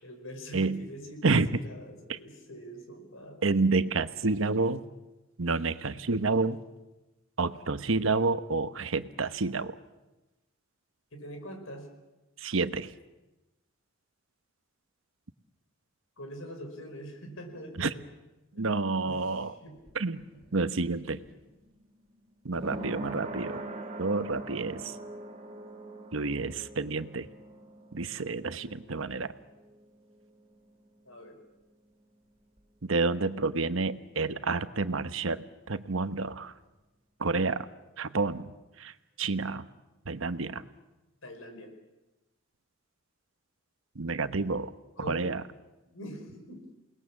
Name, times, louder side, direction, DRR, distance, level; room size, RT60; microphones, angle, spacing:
voice 1, 0.0-3.5 11.1-11.9 16.2-18.0 18.5-18.7 19.0-19.8 20.2-20.4 31.1-31.4 41.2-41.7 45.0-45.4 45.9-46.7, equal, 85° left, 5 dB, 5.3 m, -44 dB
voice 2, 0.5-0.9 1.2-1.6 2.1-2.2 3.4-4.9 5.4-6.6 7.4-9.8 12.4-12.9 17.8-17.9 18.5-19.5 19.9-20.2 20.5-21.2 22.4-23.6 24.0-25.0 26.1-27.3 27.9-29.3 32.8-36.5 37.2-37.7 38.0-39.7 40.0-40.7 43.9-44.7 45.1-45.4, right 3 dB, 75° right, 11 dB, 1.0 m, -29 dB
sound 1, 19.6-31.0 31.3-31.4, right 2 dB, 30° right, 3.3 m, -43 dB
28.5 x 19.5 x 7.3 m, 1.1 s
head